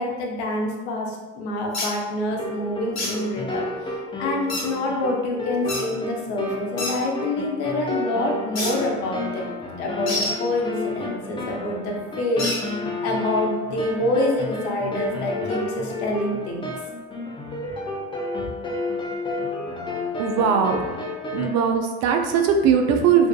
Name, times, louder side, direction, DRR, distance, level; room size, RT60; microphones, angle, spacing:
voice 1, 0.0-3.9 4.2-9.5 9.8-16.7 18.4-18.5, left 1 dB, 75° left, 0 dB, 0.6 m, -27 dB
sound 1, 1.7-1.9 2.9-3.1 4.5-4.6 5.7-5.8 6.8-6.9 8.5-8.7 10.1-10.3 12.4-12.6, left 2 dB, 50° left, 1.1 m, -26 dB
sound 2, 2.3-21.5, left 2 dB, 15° left, 0.5 m, -31 dB
voice 2, 20.2-20.8 21.3-23.3, right 6 dB, 55° right, 4 dB, 0.4 m, -20 dB
2.5 x 2.3 x 2.2 m, 1.2 s
hypercardioid pair, 65°, 33 cm